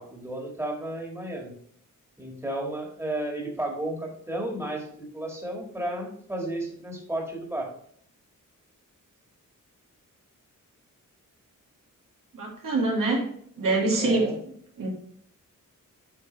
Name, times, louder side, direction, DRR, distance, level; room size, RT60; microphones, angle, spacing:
voice 1, 0.0-1.5 2.2-7.7 14.0-14.4, right 1 dB, 10° right, -1 dB, 1.8 m, -33 dB
voice 2, 12.3-13.3 13.6-14.3 14.8-14.9, right 2 dB, 85° right, -2 dB, 2.3 m, -25 dB
8.2 x 5.3 x 3.3 m, 0.63 s
wide cardioid pair, 120°, 32 cm